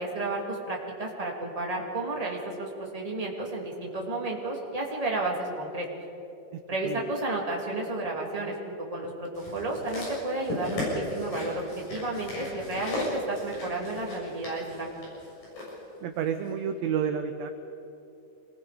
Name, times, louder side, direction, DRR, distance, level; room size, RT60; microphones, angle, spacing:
voice 1, 0.0-5.9 6.7-8.6 8.9-11.6 11.9-14.9, right 2 dB, 10° right, -2 dB, 2.4 m, -32 dB
voice 2, 6.5-7.0 16.0-17.5, right 8 dB, 75° right, 7 dB, 1.7 m, -30 dB
sound 1, 9.4-15.7 16.5-16.6, left 1 dB, 80° left, 8.2 m, -36 dB
27.0 x 21.0 x 5.2 m, 2.8 s
omnidirectional pair, 3.9 m